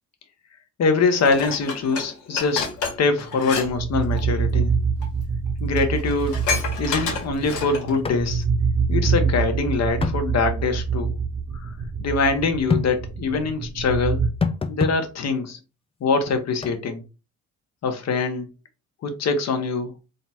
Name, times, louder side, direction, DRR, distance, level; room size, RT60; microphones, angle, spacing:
voice 1, 0.8-2.7 3.0-4.7 5.6-6.4 6.8-8.4 8.9-11.2 11.6-11.7 12.0-14.2 14.7-15.6 16.0-17.0 17.8-18.5 19.0-19.9, left 4 dB, 60° left, 1.1 m, -23 dB
Dishes pots and pans, 1.2-3.7 4.0-4.2 5.0-5.1 5.5-5.6 5.8-8.0 8.4-8.5, left 5 dB, 80° left, 1.5 m, -29 dB
sound 1, 3.2-14.3, right 5 dB, 40° right, 0.8 m, -25 dB
sound 2, 8.0-8.2 8.5-8.6 10.0-10.2 12.7-12.9 14.4-15.0 16.6-16.8, left 4 dB, 20° left, 0.5 m, -24 dB
3.9 x 2.3 x 4.3 m
cardioid pair, 90°, 30 cm